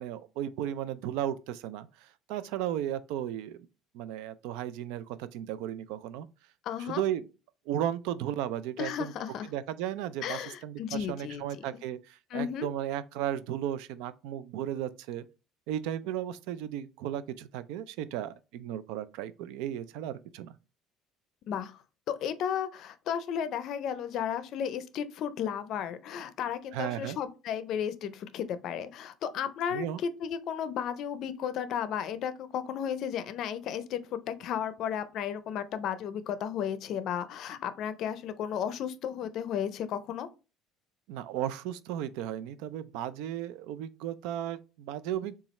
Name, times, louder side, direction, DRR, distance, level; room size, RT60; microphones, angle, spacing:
voice 1, 0.0-3.6 3.9-6.3 6.8-7.3 7.7-9.1 9.5-15.2 15.7-20.5 26.7-27.2 29.7-30.0 41.1-45.3, right 11 dB, 85° right, 0.4 m, -35 dB
voice 2, 6.7-7.0 8.8-9.5 10.2-11.4 12.3-12.7 21.5-40.3, left 8 dB, 50° left, 0.5 m, -34 dB
7.0 x 2.4 x 3.1 m
cardioid pair, 150°, 0 cm